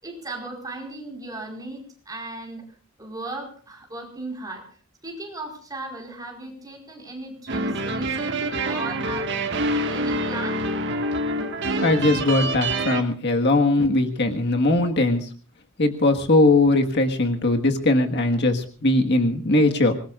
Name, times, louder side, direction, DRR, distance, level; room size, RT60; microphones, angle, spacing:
voice 1, 0.0-2.6 3.0-4.7 5.0-9.3 9.6-10.7, right 2 dB, 20° right, 0 dB, 4.7 m, -36 dB
sound 1, 7.5-13.0, right 1 dB, 60° right, 1.8 m, -26 dB
voice 2, 11.8-15.3 15.8-20.0, left 2 dB, 55° left, 4 dB, 1.6 m, -20 dB
25.5 x 20.0 x 2.5 m, 0.39 s
head